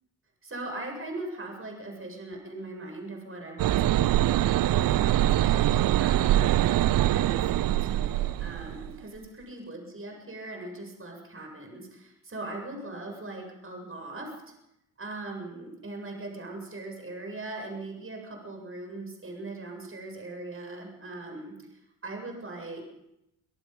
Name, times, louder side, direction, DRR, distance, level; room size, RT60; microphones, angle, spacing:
voice 1, 0.4-6.7 7.1-14.3 15.0-21.5 22.0-22.9, right 2 dB, 30° right, 2 dB, 7.7 m, -40 dB
sound 1, 3.6-8.9, right 14 dB, 45° right, 0.7 m, -24 dB
26.5 x 18.0 x 5.5 m, 0.85 s
figure-of-eight pair, 45°, 46 cm